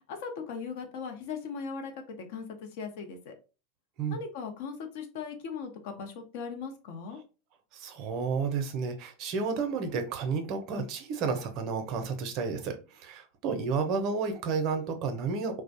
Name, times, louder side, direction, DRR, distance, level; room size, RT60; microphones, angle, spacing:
voice 1, 0.1-3.3 4.1-7.2, left 5 dB, 65° left, 4 dB, 0.6 m, -39 dB
voice 2, 7.7-15.6, right 5 dB, 50° right, 7 dB, 0.5 m, -31 dB
2.3 x 2.0 x 2.7 m, 0.32 s
hypercardioid pair, 95°, 0 cm